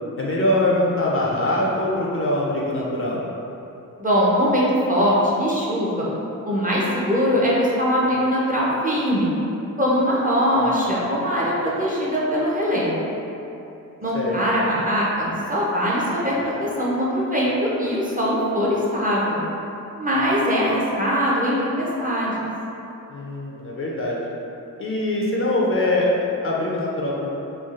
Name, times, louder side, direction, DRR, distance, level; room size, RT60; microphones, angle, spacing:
voice 1, 0.2-3.2 14.1-14.3 23.1-24.2 24.8-26.1 26.4-27.4, left 1 dB, 40° left, -4 dB, 0.4 m, -23 dB
voice 2, 4.0-6.1 6.4-9.3 9.8-13.1 14.0-19.4 20.0-22.3, equal, 25° right, -6 dB, 0.5 m, -21 dB
3.1 x 2.3 x 2.4 m, 2.9 s
wide cardioid pair, 90°, 34 cm